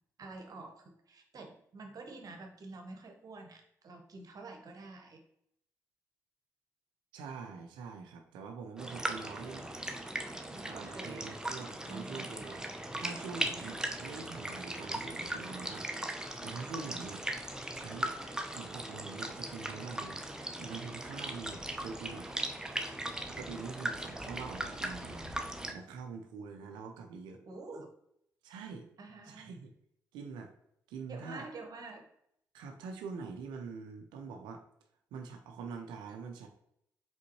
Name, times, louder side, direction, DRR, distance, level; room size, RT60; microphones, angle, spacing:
voice 1, 0.2-5.2 10.5-11.4 11.9-12.3 27.5-27.9 29.0-29.6 31.1-32.1, right 3 dB, 50° right, 3 dB, 1.0 m, -48 dB
voice 2, 7.1-9.7 10.5-17.2 17.7-18.1 18.5-22.3 23.3-25.3 25.7-27.4 28.4-28.9 29.3-29.7 30.1-30.5 30.9-31.5 32.5-34.6 35.1-36.5, right 5 dB, 70° right, 4 dB, 0.5 m, -45 dB
sound 1, 8.8-25.7, right 1 dB, 10° right, 0.7 m, -39 dB
5.1 x 3.6 x 2.8 m, 0.74 s
hypercardioid pair, 40°, 8 cm